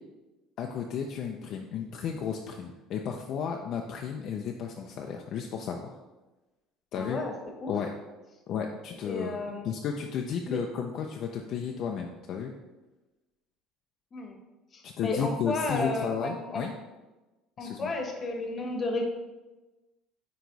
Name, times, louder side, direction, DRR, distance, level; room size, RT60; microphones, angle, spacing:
voice 1, 0.6-6.0 6.9-7.2 7.7-7.9 8.5-9.4 9.6-12.5 14.8-16.7 17.6-17.9, left 7 dB, 50° left, 2 dB, 0.5 m, -33 dB
voice 2, 6.9-7.3 7.6-7.7 9.0-9.7 10.5-10.6 14.1-14.4 14.7-16.6 17.6-19.0, left 2 dB, 30° left, 3 dB, 1.0 m, -32 dB
9.1 x 3.1 x 3.9 m, 1.1 s
cardioid pair, 145°, 0 cm